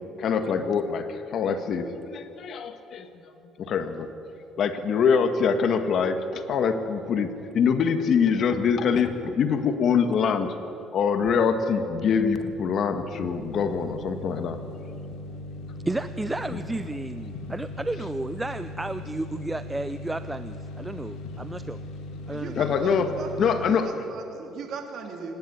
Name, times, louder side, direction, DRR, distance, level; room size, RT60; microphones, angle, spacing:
voice 1, 0.2-3.1 3.6-4.1 4.6-10.5 10.9-14.6 16.5-16.6 22.6-23.9, left 6 dB, 55° left, 8 dB, 1.6 m, -24 dB
sound 1, 11.9-23.7, left 2 dB, 80° left, 2.8 m, -39 dB
voice 2, 15.9-21.8 22.3-22.5, right 2 dB, 10° right, 12 dB, 0.5 m, -32 dB
voice 3, 22.2-25.4, right 5 dB, 60° right, 3 dB, 3.1 m, -39 dB
25.0 x 11.0 x 9.8 m, 2.8 s
cardioid pair, 110°, 0 cm